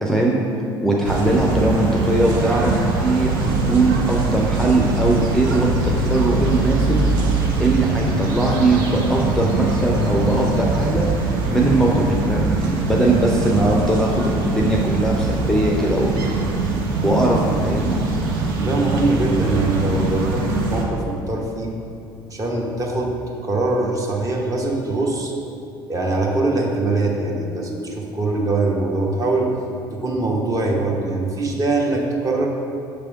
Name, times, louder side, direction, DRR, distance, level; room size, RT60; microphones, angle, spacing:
voice 1, 0.0-0.4 0.8-2.7 3.0-7.0 7.6-11.1 11.5-16.2 17.0-18.0, right 2 dB, 5° left, -2 dB, 0.6 m, -20 dB
sound 1, 1.0-20.8, right 3 dB, 65° right, 0.7 m, -22 dB
voice 2, 18.6-21.7 22.3-23.1 23.4-25.3 25.9-29.5 29.9-32.5, right 2 dB, 25° right, -2 dB, 1.0 m, -22 dB
5.9 x 3.4 x 4.6 m, 2.6 s
figure-of-eight pair, 55°, 12 cm